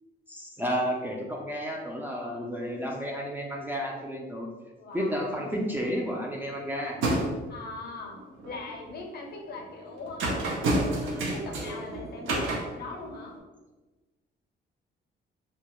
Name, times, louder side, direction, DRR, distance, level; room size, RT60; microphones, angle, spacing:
voice 1, 0.3-4.5 4.9-7.0 10.8-11.2 11.7-11.8, equal, 10° right, -2 dB, 0.4 m, -32 dB
voice 2, 2.1-2.5 4.8-5.3 7.5-8.2 8.4-11.0 11.3-13.3, left 3 dB, 55° left, 1 dB, 0.6 m, -41 dB
sound 1, 4.9-5.2 5.5-6.0 6.4-7.5 8.1-8.9 9.3-13.4, right 2 dB, 80° right, 0.5 m, -31 dB
2.2 x 2.0 x 2.9 m, 1.2 s
cardioid pair, 90°, 20 cm